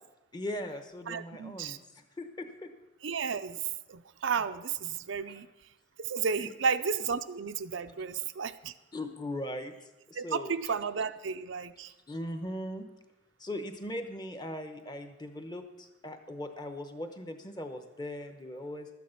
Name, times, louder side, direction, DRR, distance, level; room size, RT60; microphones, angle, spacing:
voice 1, 0.3-2.7 5.3-5.4 6.4-6.5 8.9-9.7 10.1-10.5 12.1-12.9 13.4-18.9, left 1 dB, 20° left, 7 dB, 0.9 m, -39 dB
voice 2, 1.1-1.8 3.0-3.6 3.9-5.5 6.0-8.7 10.2-11.9, right 6 dB, 80° right, 10 dB, 0.6 m, -33 dB
12.5 x 9.4 x 5.8 m, 1.0 s
head